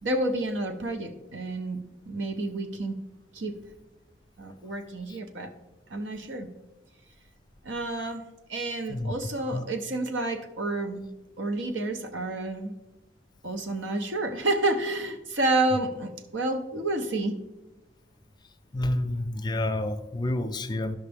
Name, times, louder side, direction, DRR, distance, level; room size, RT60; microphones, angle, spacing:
voice 1, 0.0-1.8 2.1-2.9 3.3-3.5 4.4-5.5 5.9-6.5 7.6-11.1 11.4-12.7 13.4-17.4, right 2 dB, 80° right, 7 dB, 0.8 m, -29 dB
voice 2, 18.7-21.0, left 1 dB, 25° left, 8 dB, 0.5 m, -29 dB
11.5 x 5.7 x 3.5 m, 1.1 s
head